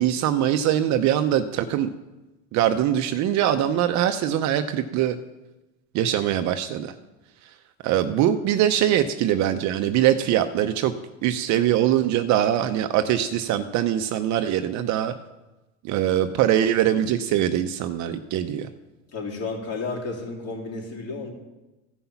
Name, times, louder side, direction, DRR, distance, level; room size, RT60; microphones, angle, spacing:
voice 1, 0.0-1.9 2.5-5.2 5.9-6.9 7.4-7.5 7.8-10.9 11.2-15.1 15.8-18.7, right 11 dB, 55° right, 8 dB, 0.7 m, -22 dB
voice 2, 19.1-21.3, left 3 dB, 45° left, -1 dB, 3.7 m, -32 dB
15.0 x 5.7 x 5.8 m, 1.1 s
supercardioid pair, 115°, 34 cm